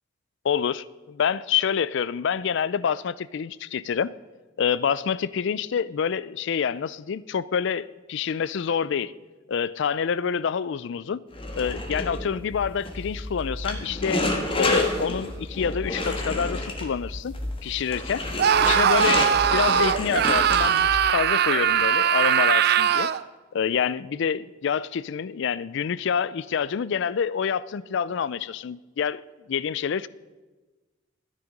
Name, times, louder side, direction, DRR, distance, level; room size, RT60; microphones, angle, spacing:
voice 1, 0.4-4.1 4.6-9.1 9.5-11.2 11.6-14.2 14.6-17.3 17.6-18.2 18.6-23.1 23.5-29.2 29.5-30.1, left 7 dB, 65° left, 0.4 m, -27 dB
sound 1, 11.3-21.1, left 2 dB, 30° left, 1.4 m, -29 dB
Screaming, 18.4-23.2, right 8 dB, 55° right, 0.4 m, -21 dB
13.0 x 9.9 x 5.2 m
head